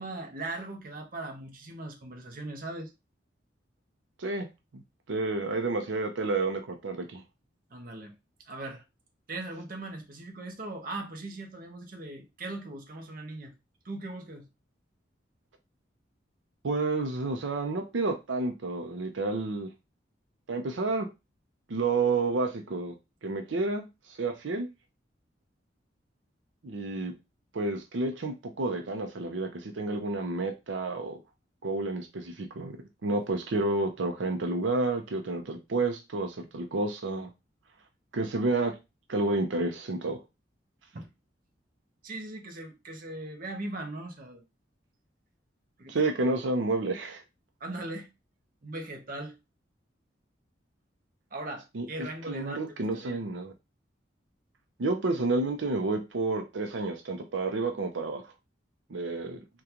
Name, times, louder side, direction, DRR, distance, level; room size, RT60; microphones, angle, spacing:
voice 1, 0.0-2.9 7.7-8.1 8.5-8.8 9.3-13.5 13.8-14.5 40.9-41.1 42.0-44.4 45.8-45.9 47.6-48.1 48.6-49.3 51.3-53.2, right 2 dB, 50° right, 0.7 m, -39 dB
voice 2, 5.1-7.2 16.6-19.7 20.5-21.1 21.7-23.0 23.2-23.9 24.2-24.7 26.6-27.1 27.5-31.2 31.6-37.3 38.1-38.7 39.1-40.2 45.9-47.2 51.7-53.5 54.8-58.2 58.9-59.4, right 3 dB, 85° right, 0.6 m, -30 dB
3.7 x 2.3 x 2.8 m
head